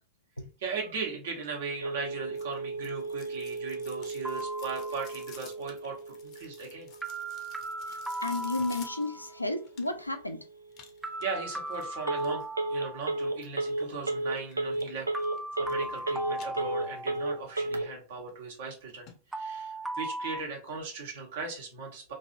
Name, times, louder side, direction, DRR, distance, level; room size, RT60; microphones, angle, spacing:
voice 1, 0.6-6.9 11.2-12.4 12.7-15.1 15.6-19.1 19.3-22.1, right 4 dB, 60° right, 1.0 m, -38 dB
Telephone, 1.8-17.8, right 2 dB, 80° right, 0.4 m, -35 dB
sound 1, 2.4-10.2 10.7-12.5 14.4-14.9 15.2-16.0 16.3-17.2 17.6-17.7 18.3-18.4 18.7-18.8 19.1-19.2 19.5-19.6, left 7 dB, 40° left, 0.6 m, -53 dB
sound 2, 4.2-5.4 7.0-9.3 11.0-13.3 15.1-17.5 19.3-20.4, right 1 dB, 5° right, 0.3 m, -38 dB
voice 2, 8.2-10.4, left 2 dB, 85° left, 0.3 m, -32 dB
2.9 x 2.6 x 2.5 m
figure-of-eight pair, 90°, 0 cm